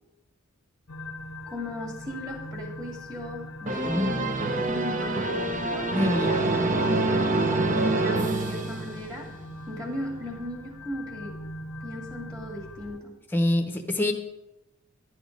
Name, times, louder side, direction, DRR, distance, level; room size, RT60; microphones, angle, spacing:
sound 1, 0.9-13.0, left 1 dB, 90° left, 0.9 m, -41 dB
voice 1, 1.5-6.5 6.9-9.3 9.7-11.4 11.8-13.2, left 1 dB, 15° right, 0 dB, 2.0 m, -37 dB
sound 2, 3.7-9.3, right 2 dB, 35° right, 0.7 m, -26 dB
voice 2, 3.9-4.2 5.9-6.4 13.3-14.1, left 1 dB, 10° left, 4 dB, 0.9 m, -25 dB
11.0 x 8.6 x 5.2 m, 0.98 s
head